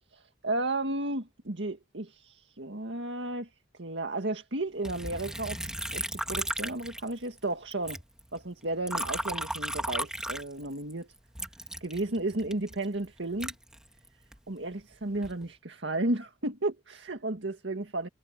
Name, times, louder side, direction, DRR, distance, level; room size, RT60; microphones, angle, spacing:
voice 1, 0.4-3.5 3.8-6.0 6.3-8.0 8.3-11.1 11.8-13.5 14.5-18.1, right 2 dB, 70° right, 2.0 m, -33 dB
Liquid, 4.8-7.4 7.7-10.9 11.3-14.4 14.9-15.5, right 1 dB, 5° right, 1.8 m, -35 dB
head